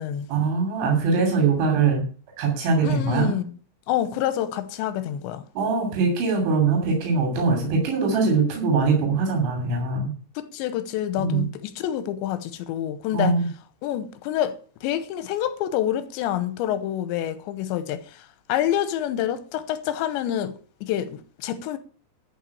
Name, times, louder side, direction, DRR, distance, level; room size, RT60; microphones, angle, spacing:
voice 1, 0.3-2.0 2.4-3.3 5.6-10.1 11.2-11.5 13.1-13.5, right 4 dB, 85° right, 5.2 m, -22 dB
voice 2, 2.8-3.6 3.9-5.4 10.4-13.4 13.8-21.8, left 11 dB, 90° left, 3.1 m, -27 dB
13.5 x 5.5 x 8.4 m
omnidirectional pair, 5.2 m